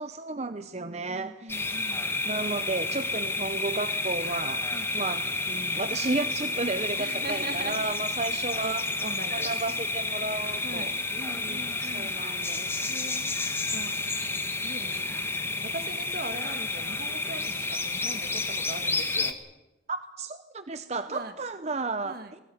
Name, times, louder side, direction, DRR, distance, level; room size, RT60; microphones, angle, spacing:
voice 1, 0.0-1.7 2.2-4.7 4.9-8.8 9.3-10.9 11.3-13.0 14.8-15.0 19.9-22.4, right 3 dB, 35° right, 11 dB, 0.8 m, -33 dB
voice 2, 0.7-2.1 4.7-5.0 7.0-8.1 8.5-9.6 10.6-12.1 12.9-14.1 14.6-15.3 15.6-19.4 21.1-21.4 22.0-22.3, right 2 dB, 55° right, 7 dB, 1.8 m, -41 dB
sound 1, 1.5-19.3, left 3 dB, 15° left, 1.5 m, -30 dB
21.0 x 17.0 x 9.4 m, 0.97 s
head